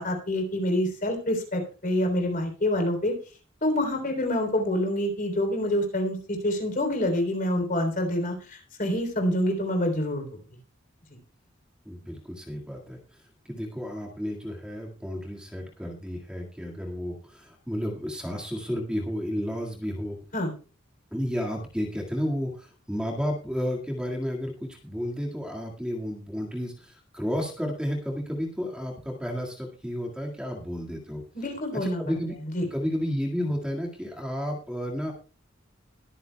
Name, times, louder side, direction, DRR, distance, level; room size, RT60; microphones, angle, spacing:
voice 1, 0.0-3.1 3.6-10.3 20.3-20.5 31.3-32.0 32.5-32.7, left 1 dB, 45° left, 4 dB, 3.5 m, -27 dB
voice 2, 11.9-13.0 13.5-20.2 21.1-31.2 31.8-32.4 32.7-35.1, equal, 5° right, 0 dB, 1.9 m, -32 dB
21.5 x 9.4 x 2.3 m, 0.37 s
head